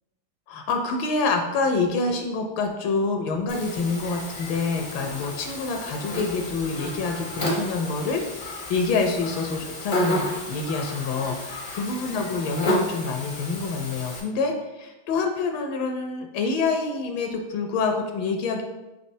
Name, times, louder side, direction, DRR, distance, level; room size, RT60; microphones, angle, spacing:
voice 1, 0.5-18.6, left 4 dB, 80° left, 4 dB, 1.3 m, -27 dB
Buzz, 3.5-14.2, left 1 dB, 55° left, 0.5 m, -32 dB
4.6 x 4.2 x 2.6 m, 1.1 s
omnidirectional pair, 2.2 m